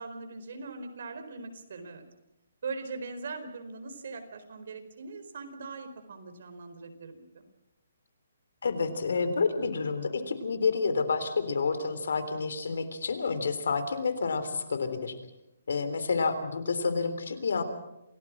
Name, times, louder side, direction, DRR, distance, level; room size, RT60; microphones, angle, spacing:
voice 1, 0.0-2.0 2.6-7.4, right 4 dB, 55° right, 7 dB, 4.5 m, -41 dB
voice 2, 8.6-15.2 15.7-17.6, left 4 dB, 75° left, 11 dB, 3.6 m, -29 dB
28.0 x 18.0 x 6.2 m, 0.89 s
hypercardioid pair, 170°, 0 cm